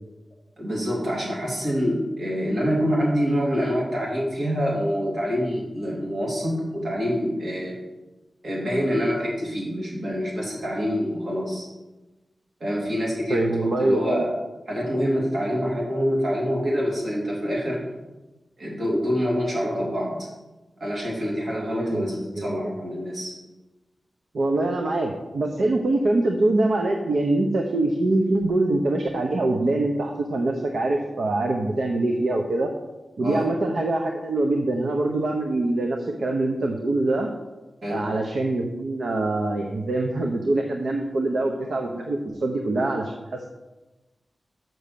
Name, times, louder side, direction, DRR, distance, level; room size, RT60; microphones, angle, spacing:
voice 1, 0.6-7.7 8.4-11.7 12.6-14.3 14.7-17.8 18.6-20.3 20.8-23.3 33.2-33.5 37.8-38.0, equal, 55° right, -3 dB, 3.0 m, -26 dB
voice 2, 13.3-14.2 21.7-22.6 24.3-32.7 33.2-37.3 37.9-43.5, right 2 dB, 75° right, 2 dB, 0.8 m, -24 dB
6.4 x 6.1 x 6.8 m, 1.1 s
wide cardioid pair, 135°, 0 cm